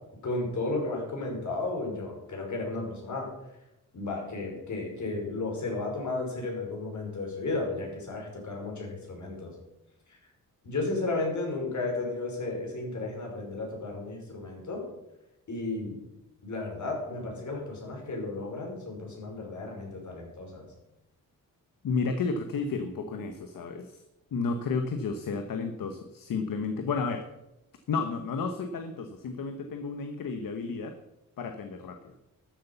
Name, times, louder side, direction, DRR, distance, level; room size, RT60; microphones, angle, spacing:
voice 1, 0.2-3.3 3.9-9.5 10.1-10.2 10.6-14.8 15.5-16.0 16.4-20.7, left 2 dB, 60° left, -1 dB, 5.3 m, -33 dB
voice 2, 21.8-24.0 24.3-27.2 27.9-30.9 31.4-32.2, left 4 dB, 75° left, 7 dB, 1.1 m, -32 dB
12.5 x 8.1 x 7.0 m, 0.94 s
cardioid pair, 100°, 34 cm